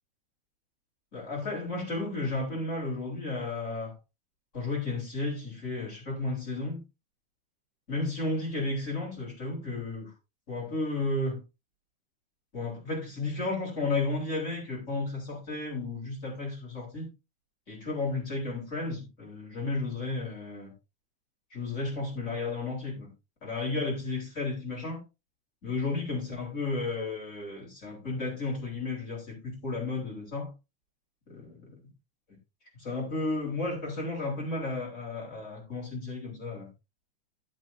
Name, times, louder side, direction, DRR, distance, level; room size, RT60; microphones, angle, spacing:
voice 1, 1.1-3.9 4.5-6.8 7.9-10.1 10.5-11.4 12.5-17.1 17.7-20.7 21.5-23.1 23.4-25.0 25.6-30.5 31.3-31.9 32.8-36.7, left 3 dB, 25° left, 4.3 m, -33 dB
12.0 x 7.9 x 2.7 m
omnidirectional pair, 3.4 m